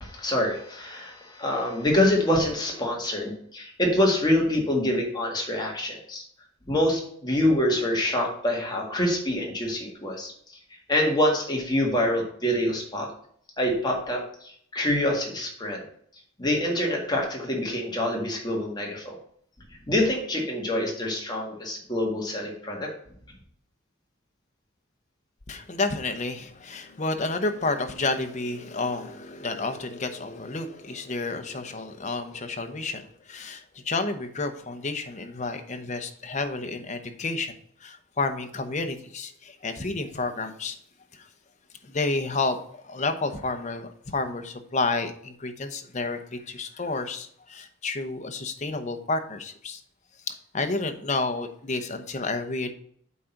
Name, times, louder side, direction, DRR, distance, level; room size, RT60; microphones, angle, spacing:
voice 1, 0.0-6.2 6.7-10.3 10.9-13.1 13.6-15.8 16.4-19.2 19.9-22.9, left 1 dB, 20° left, -1 dB, 1.8 m, -26 dB
voice 2, 25.5-37.5 37.8-40.8 41.1-41.3 41.8-49.8 50.3-52.7, left 3 dB, 35° left, 7 dB, 0.8 m, -30 dB
8.3 x 3.8 x 5.8 m, 0.64 s
head